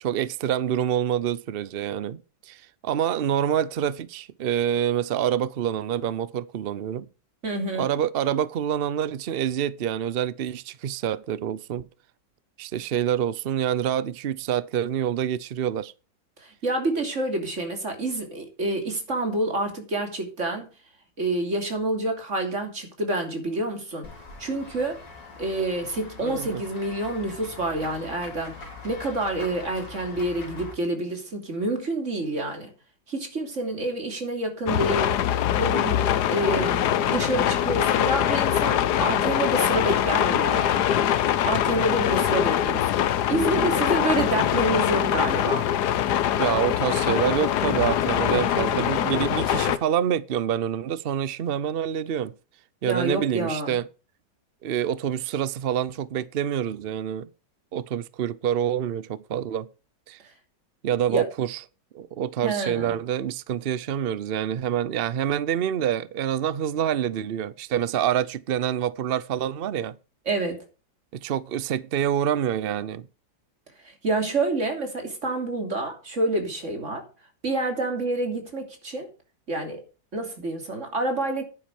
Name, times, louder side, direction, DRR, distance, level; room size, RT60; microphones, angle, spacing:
voice 1, 0.0-7.1 7.8-11.9 12.6-15.9 26.2-26.6 46.4-52.3 52.8-53.9 54.6-57.3 57.7-59.7 60.1-60.2 60.8-61.6 61.9-70.0 71.1-73.1, right 10 dB, 85° right, 0.5 m, -27 dB
voice 2, 7.4-7.9 16.4-20.7 21.2-24.1 24.4-25.0 25.4-32.7 33.1-35.2 35.6-40.7 41.4-45.7 52.8-53.8 61.1-61.2 62.4-63.0 70.3-70.6 73.8-77.0 77.4-79.1 79.5-79.8 80.1-81.4, right 2 dB, 40° right, 3.3 m, -28 dB
Run / Walk footsteps / Bell, 24.0-30.7, left 4 dB, 85° left, 4.2 m, -42 dB
sound 1, 34.7-49.8, left 10 dB, 70° left, 1.3 m, -23 dB
10.5 x 9.8 x 4.8 m
omnidirectional pair, 1.9 m